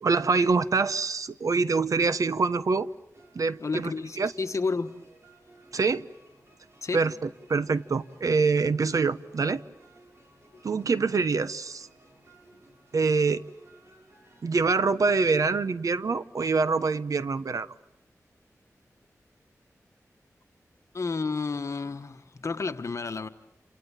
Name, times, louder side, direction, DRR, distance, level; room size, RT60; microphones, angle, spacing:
voice 1, 0.0-2.9 3.3-3.9 4.2-4.3 5.7-6.1 6.9-9.6 10.6-11.9 12.9-13.4 14.4-17.7, right 4 dB, 75° right, 1.0 m, -25 dB
sound 1, 3.1-14.5, right 2 dB, 50° right, 6.8 m, -57 dB
voice 2, 3.6-4.9 6.8-7.1 20.9-23.3, left 4 dB, 60° left, 1.5 m, -31 dB
28.5 x 28.0 x 7.3 m
wide cardioid pair, 90°, 6 cm